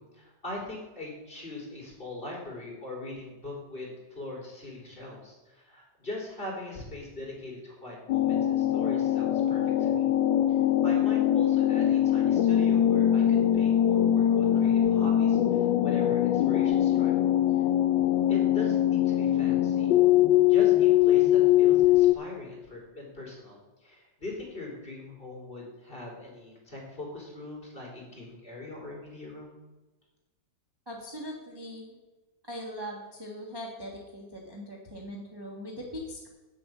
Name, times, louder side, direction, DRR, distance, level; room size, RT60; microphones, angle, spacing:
voice 1, 0.0-10.1 10.5-10.6 10.8-17.1 17.5-17.6 18.3-19.9 20.5-29.5, left 2 dB, 30° left, -3 dB, 3.8 m, -41 dB
sound 1, 8.1-22.1, left 11 dB, 90° left, 1.3 m, -22 dB
voice 2, 30.9-31.9 32.5-36.3, equal, 15° right, -2 dB, 1.4 m, -40 dB
9.2 x 7.7 x 7.4 m, 1.1 s
omnidirectional pair, 2.0 m